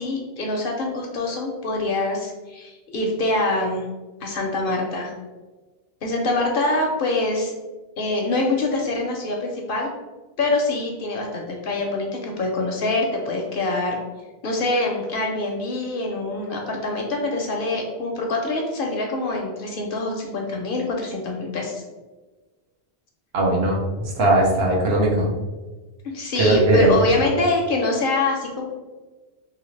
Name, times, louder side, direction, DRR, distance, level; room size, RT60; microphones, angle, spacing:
voice 1, 0.0-3.8 4.2-5.1 6.0-7.5 8.0-9.9 10.4-14.0 14.4-21.8 26.1-28.6, left 2 dB, 60° left, 1 dB, 0.7 m, -24 dB
voice 2, 23.3-25.3 26.4-27.1, right 1 dB, 65° right, -2 dB, 1.0 m, -19 dB
2.8 x 2.8 x 3.1 m, 1.2 s
omnidirectional pair, 1.1 m